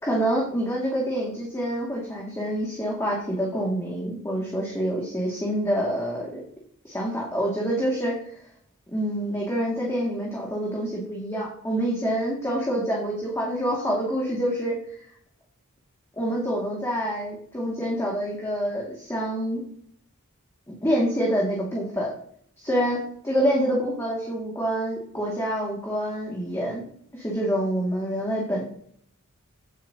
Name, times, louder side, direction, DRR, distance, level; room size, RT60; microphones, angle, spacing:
voice 1, 0.0-6.4 6.8-8.1 8.9-14.7 16.2-19.6 20.8-22.1 22.6-23.0 23.2-26.8 27.1-28.6, equal, 15° left, -4 dB, 2.1 m, -26 dB
16.5 x 7.5 x 2.8 m, 0.64 s
head